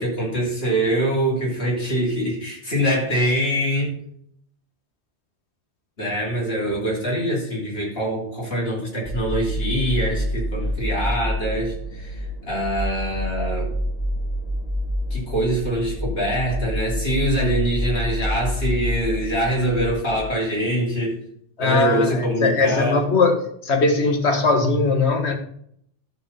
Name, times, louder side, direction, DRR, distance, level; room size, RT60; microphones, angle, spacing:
voice 1, 0.0-3.9 6.0-13.7 15.1-21.2 21.6-23.0, equal, 65° left, 3.6 m, -24 dB
sound 1, 9.0-20.2, equal, 35° left, 2.0 m, -27 dB
voice 2, 21.6-25.4, left 3 dB, 80° left, 1.7 m, -20 dB
13.0 x 4.9 x 5.5 m
omnidirectional pair, 1.1 m